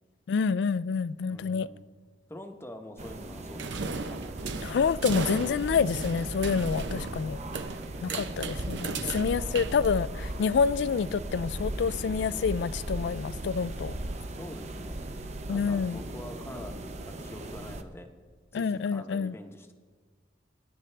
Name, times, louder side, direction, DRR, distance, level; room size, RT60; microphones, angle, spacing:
voice 1, 0.3-1.7 4.6-7.4 8.0-13.9 15.5-16.0 18.5-19.3, left 6 dB, 70° left, 0.3 m, -28 dB
voice 2, 1.3-1.9 2.3-4.5 7.1-7.7 8.1-8.6 9.3-9.9 14.4-15.0 15.5-18.1 18.5-19.7, left 1 dB, 15° left, 0.9 m, -46 dB
sound 1, 3.0-17.8, right 1 dB, 35° right, 0.7 m, -37 dB
sound 2, 3.6-10.3, right 4 dB, 75° right, 0.8 m, -36 dB
24.0 x 10.5 x 3.3 m
head